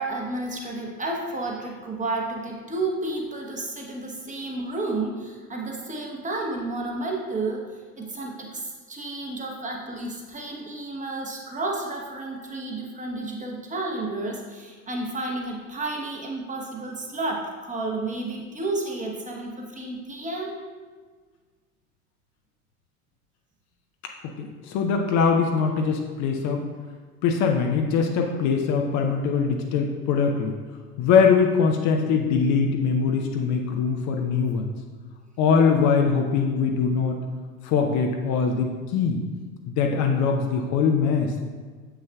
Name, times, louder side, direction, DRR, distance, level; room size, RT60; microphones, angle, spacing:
voice 1, 0.0-7.7 8.0-20.7, right 2 dB, 15° right, -1 dB, 1.1 m, -31 dB
voice 2, 24.4-26.6 27.2-30.6 31.0-34.7 35.4-37.2 37.6-39.2 39.7-41.4, left 5 dB, 40° left, 3 dB, 0.6 m, -22 dB
7.6 x 5.6 x 2.3 m, 1.5 s
figure-of-eight pair, 70°, 44 cm